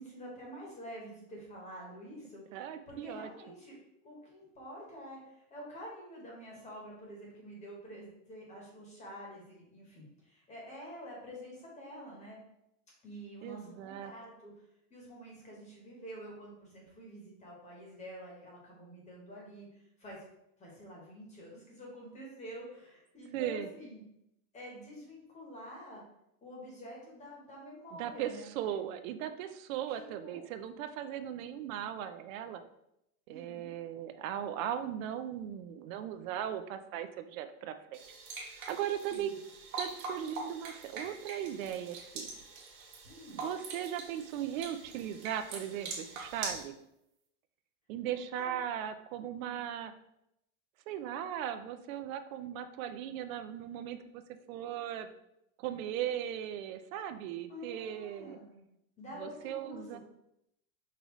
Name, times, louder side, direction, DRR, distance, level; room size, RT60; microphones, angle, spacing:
voice 1, 0.0-12.4 13.0-14.5 14.9-20.2 20.6-24.0 24.5-26.0 26.4-28.5 29.9-30.4 33.3-33.7 39.1-39.4 43.0-43.4 48.1-48.6 49.3-49.6 57.5-58.6 59.0-60.0, equal, 15° left, -3 dB, 1.0 m, -48 dB
voice 2, 2.5-3.3 13.4-14.1 23.3-23.7 28.0-28.3 28.6-32.6 33.3-38.0 38.5-39.3 39.8-42.3 43.3-46.7 47.9-49.9 50.9-54.2 54.5-55.1 55.6-58.4 59.2-60.0, right 10 dB, 65° right, 9 dB, 0.5 m, -38 dB
sound 1, 37.9-46.6, right 4 dB, 90° right, 1.5 m, -43 dB
5.4 x 2.6 x 3.0 m, 0.81 s
supercardioid pair, 160°, 43 cm